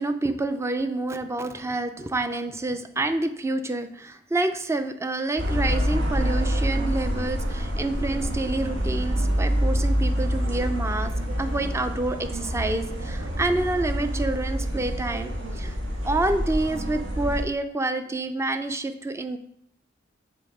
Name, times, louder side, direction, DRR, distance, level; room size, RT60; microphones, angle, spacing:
voice 1, 0.0-11.1 11.4-15.8 16.0-19.4, right 2 dB, 15° right, 9 dB, 0.4 m, -28 dB
sound 1, 5.4-17.4, equal, 70° right, 1.3 m, -27 dB
5.5 x 3.8 x 4.8 m, 0.70 s
head